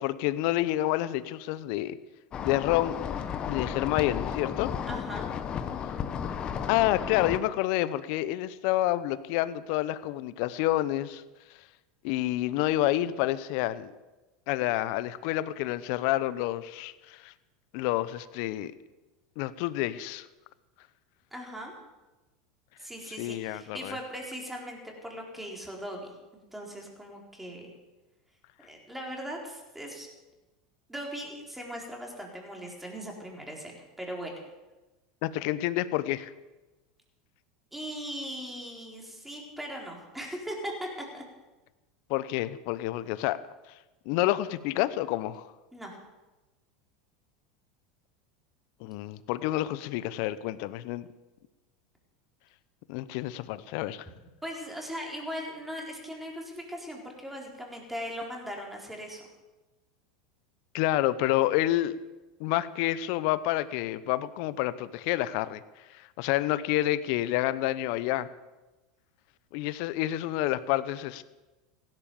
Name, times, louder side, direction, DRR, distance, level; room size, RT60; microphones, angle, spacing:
voice 1, 0.0-2.0 2.4-3.0 3.5-4.7 6.7-11.2 12.0-13.9 14.5-17.3 17.7-18.7 19.4-20.3 23.2-24.0 35.2-36.3 42.1-43.4 44.1-45.5 48.8-51.1 52.9-54.0 60.7-62.0 62.4-65.6 65.9-68.3 69.5-71.2, left 15 dB, 65° left, 15 dB, 0.9 m, -28 dB
sound 1, 2.3-7.4, left 8 dB, 35° left, 1.3 m, -33 dB
voice 2, 4.8-5.3 21.3-21.7 22.8-27.7 28.6-30.1 30.9-34.4 37.7-40.9 41.1-41.2 44.1-44.2 45.7-45.9 54.4-59.2, equal, 5° right, 0 dB, 4.3 m, -39 dB
16.5 x 11.0 x 7.1 m, 1.1 s
supercardioid pair, 105°, 3 cm